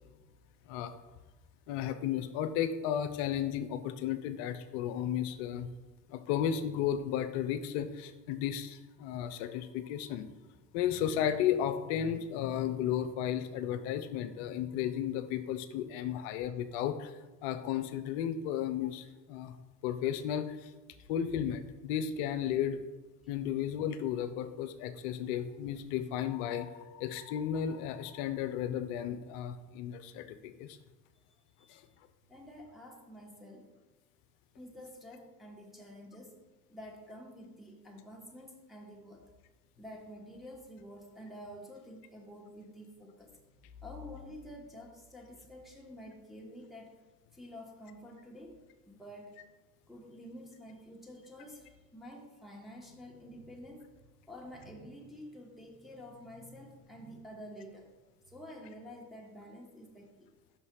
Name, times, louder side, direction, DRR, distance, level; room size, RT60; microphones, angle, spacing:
voice 1, 1.7-5.7 6.1-10.3 10.7-19.6 19.8-20.7 21.1-22.8 23.3-30.8 31.7-31.9, left 9 dB, 50° left, 10 dB, 0.6 m, -34 dB
voice 2, 32.3-33.7 34.6-36.4 36.7-39.2 39.8-43.5 43.8-46.9 47.3-48.6 48.9-49.3 49.9-53.9 54.3-57.9 58.3-60.3, equal, ahead, -1 dB, 1.2 m, -49 dB
5.7 x 5.5 x 4.8 m, 1.2 s
figure-of-eight pair, 65°, 48 cm